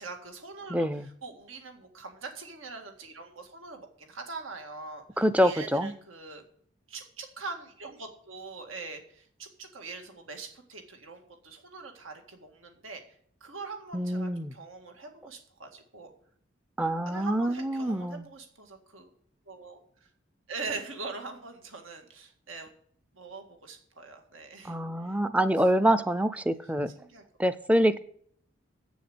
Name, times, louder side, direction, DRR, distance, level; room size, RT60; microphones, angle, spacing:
voice 1, 0.0-6.4 6.9-13.0 13.4-16.1 17.1-19.1 19.5-19.8 20.5-22.7 23.1-24.7 26.5-26.6 26.9-27.2, right 4 dB, 90° right, 5 dB, 1.9 m, -42 dB
voice 2, 0.7-1.1 5.2-5.9 13.9-14.5 16.8-18.2 24.6-26.9 27.4-28.0, equal, 5° right, 14 dB, 0.4 m, -26 dB
7.9 x 7.1 x 7.7 m, 0.63 s
head